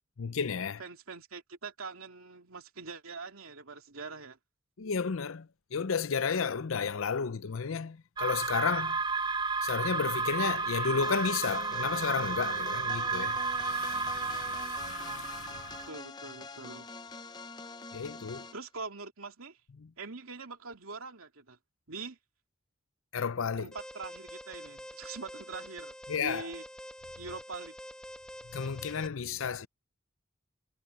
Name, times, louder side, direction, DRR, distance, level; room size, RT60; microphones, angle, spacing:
voice 1, 0.2-0.8 4.8-9.0 9.6-15.8 17.9-18.5 23.1-23.7 26.1-26.5 28.5-29.7, left 5 dB, 75° left, 0.6 m, -33 dB
voice 2, 0.8-4.4 15.9-16.9 18.5-19.6 20.0-21.6 21.9-22.2 23.6-25.9 26.2-26.6 27.2-27.7, right 4 dB, 90° right, 2.7 m, -43 dB
sound 1, 8.2-15.9, right 4 dB, 20° right, 0.5 m, -32 dB
sound 2, 11.0-18.6, left 4 dB, 20° left, 0.7 m, -45 dB
Alarm, 23.7-29.1, equal, 5° left, 1.2 m, -46 dB
head